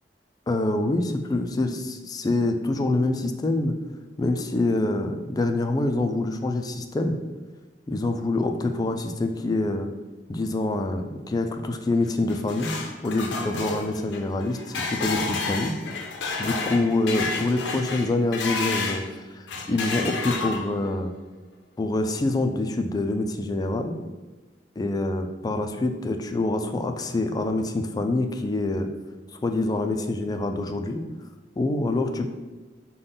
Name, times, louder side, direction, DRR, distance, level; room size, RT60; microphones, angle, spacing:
voice 1, 0.5-3.7 4.2-7.2 7.9-9.9 10.3-12.7 13.0-14.6 14.9-15.7 16.4-21.1 21.8-23.9 24.8-28.9 29.4-31.0 31.6-32.3, left 2 dB, 20° left, 5 dB, 0.3 m, -26 dB
sound 1, 12.1-19.1 19.5-20.9, left 4 dB, 85° left, 0.5 m, -31 dB
5.3 x 2.2 x 3.8 m, 1.2 s
head